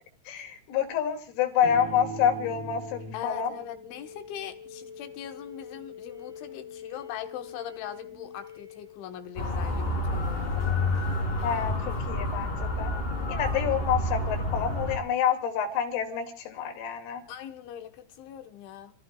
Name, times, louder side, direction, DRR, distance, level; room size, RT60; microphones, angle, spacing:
voice 1, 0.3-3.5 11.4-12.9 13.3-17.2, left 8 dB, 85° left, 5.3 m, -28 dB
sound 1, 1.6-9.5, left 1 dB, 85° right, 7.3 m, -43 dB
voice 2, 3.1-10.7 17.3-18.9, left 10 dB, 70° left, 3.4 m, -41 dB
Motor vehicle (road) / Siren, 9.4-15.0, left 1 dB, 20° left, 1.9 m, -29 dB
30.0 x 15.0 x 2.4 m
omnidirectional pair, 6.0 m